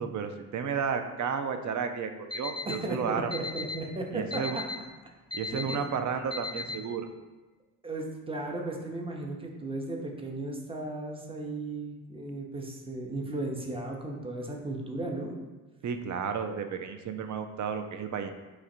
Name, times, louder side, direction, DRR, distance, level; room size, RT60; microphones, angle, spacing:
voice 1, 0.0-3.3 4.1-4.6 5.3-7.1 15.8-18.3, right 6 dB, 45° right, 8 dB, 0.4 m, -32 dB
Alarm, 2.3-2.8 3.3-3.8 4.3-4.8 5.3-5.8 6.3-6.8, left 3 dB, 10° left, 0.4 m, -35 dB
voice 2, 2.7-4.6 5.5-5.8 7.8-15.3, right 2 dB, 15° right, 1 dB, 0.7 m, -35 dB
3.1 x 2.4 x 4.3 m, 1.2 s
hypercardioid pair, 45°, 42 cm